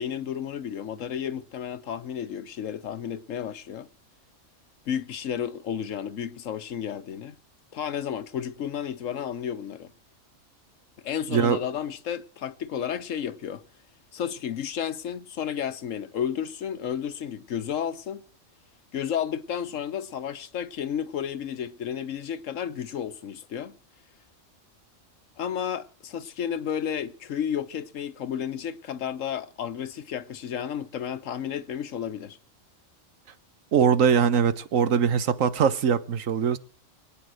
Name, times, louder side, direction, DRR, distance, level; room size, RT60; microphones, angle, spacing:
voice 1, 0.0-3.9 4.9-7.3 7.7-9.9 11.0-13.6 14.1-18.2 18.9-23.8 25.4-32.4, left 8 dB, 75° left, 1.3 m, -32 dB
voice 2, 33.7-36.6, right 7 dB, 85° right, 1.4 m, -22 dB
23.5 x 8.9 x 6.3 m
omnidirectional pair, 1.3 m